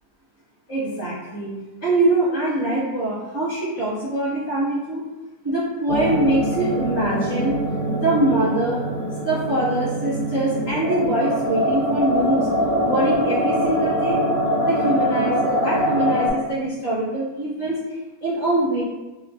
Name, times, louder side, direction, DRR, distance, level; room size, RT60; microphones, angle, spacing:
voice 1, 0.7-1.5 1.8-5.0 5.4-7.6 7.9-8.8 9.2-12.5 12.8-14.2 14.6-18.8, right 1 dB, 15° left, -12 dB, 1.0 m, -23 dB
sound 1, 5.9-16.3, equal, 50° right, 0.6 m, -23 dB
2.9 x 2.2 x 2.6 m, 1.1 s
omnidirectional pair, 1.6 m